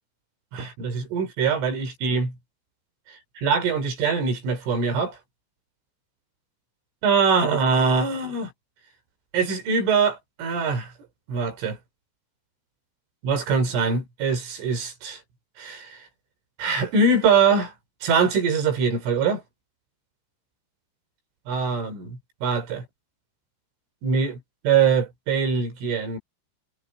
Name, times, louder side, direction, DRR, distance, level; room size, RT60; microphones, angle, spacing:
voice 1, 0.5-2.4 3.4-5.2 7.0-8.5 9.3-10.9 11.3-11.8 13.2-15.2 15.6-15.9 16.6-17.7 18.0-19.4 21.5-22.8 24.0-24.4 24.6-26.2, right 5 dB, 80° right, 7.7 m, -23 dB
omnidirectional pair, 5.6 m